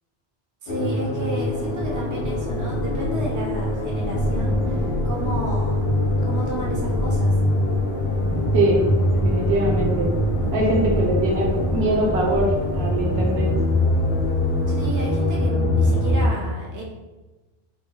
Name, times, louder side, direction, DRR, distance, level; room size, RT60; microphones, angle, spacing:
voice 1, 0.6-5.9 6.3-7.3 14.7-16.8, right 1 dB, 20° right, -3 dB, 0.6 m, -32 dB
sound 1, 0.7-16.3, left 1 dB, 55° left, 0.9 m, -23 dB
Thunder / Rain, 1.2-15.3, equal, 20° left, 0.8 m, -32 dB
voice 2, 9.1-10.1 10.5-13.5, right 1 dB, 80° right, -2 dB, 1.0 m, -22 dB
3.1 x 2.6 x 3.7 m, 1.1 s
omnidirectional pair, 1.0 m